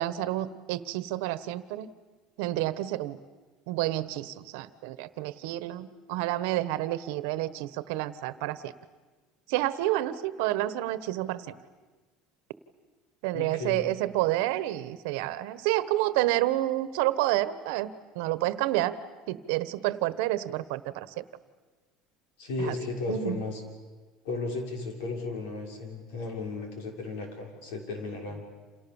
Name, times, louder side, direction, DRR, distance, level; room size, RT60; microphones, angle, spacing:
voice 1, 0.0-1.9 2.4-3.2 3.7-8.7 9.5-11.4 13.2-18.9 19.3-21.2 22.7-22.8 23.1-23.4, right 15 dB, 75° right, 14 dB, 1.3 m, -29 dB
voice 2, 13.3-13.8 22.4-23.6 24.2-28.4, left 3 dB, 80° left, 2 dB, 6.3 m, -34 dB
29.5 x 28.0 x 7.2 m, 1.3 s
cardioid pair, 175°, 0 cm